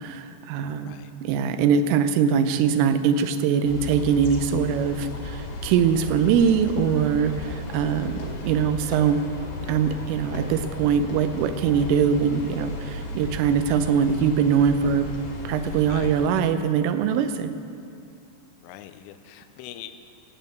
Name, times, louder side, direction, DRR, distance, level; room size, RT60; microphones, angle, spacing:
voice 1, 0.0-9.2 9.7-15.1 15.4-17.5, right 7 dB, 85° right, 10 dB, 3.3 m, -22 dB
sound 1, 3.6-16.3, left 2 dB, 45° left, 2.3 m, -35 dB
sound 2, 6.0-7.9 8.2-12.8, left 1 dB, 70° left, 4.8 m, -43 dB
voice 2, 18.6-19.9, left 12 dB, 90° left, 9 dB, 3.2 m, -42 dB
15.0 x 9.2 x 7.9 m, 2.5 s
omnidirectional pair, 5.7 m